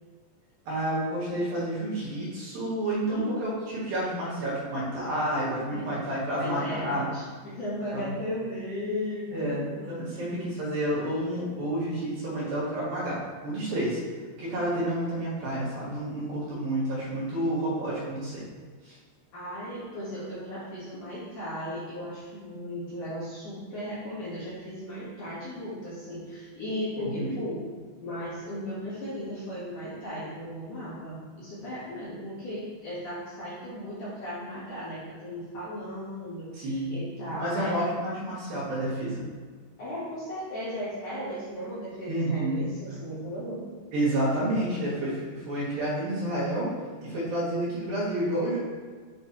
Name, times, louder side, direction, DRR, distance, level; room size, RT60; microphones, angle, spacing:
voice 1, 0.7-7.1 7.9-8.1 9.3-14.0 14.4-18.4 18.8-19.0 27.0-27.4 36.5-37.0 37.4-39.2 42.1-42.6 43.9-48.6, right 1 dB, 60° right, -7 dB, 3.1 m, -30 dB
voice 2, 3.1-3.4 5.7-5.9 6.3-9.9 19.3-27.6 28.0-37.9 39.8-43.6, equal, 55° left, -11 dB, 2.5 m, -36 dB
7.6 x 3.3 x 4.2 m, 1.5 s
omnidirectional pair, 5.1 m